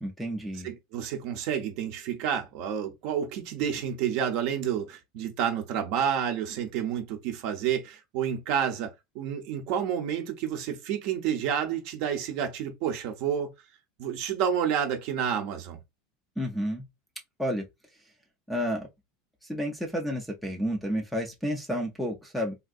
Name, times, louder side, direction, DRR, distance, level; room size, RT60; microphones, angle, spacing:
voice 1, 0.0-0.7 16.4-16.8 17.4-17.7 18.5-18.9 19.5-22.6, equal, ahead, 0.4 m, -30 dB
voice 2, 0.6-13.5 14.0-15.8, right 8 dB, 50° right, 0.6 m, -29 dB
3.6 x 2.6 x 2.3 m
supercardioid pair, 170°, 0 cm